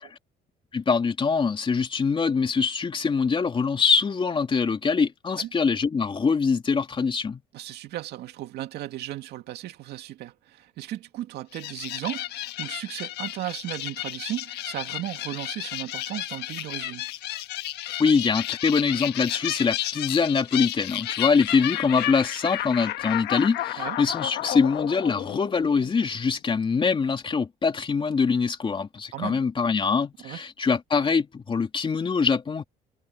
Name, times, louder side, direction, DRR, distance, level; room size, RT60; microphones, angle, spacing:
voice 1, 0.7-7.4 18.0-32.6, left 5 dB, 30° left, 2.9 m, -24 dB
voice 2, 7.5-17.1 23.8-24.0 29.1-29.4 30.2-30.4, right 14 dB, 75° right, 2.4 m, -35 dB
sound 1, 11.5-26.2, left 14 dB, 80° left, 1.4 m, -32 dB
cardioid pair, 110°, 17 cm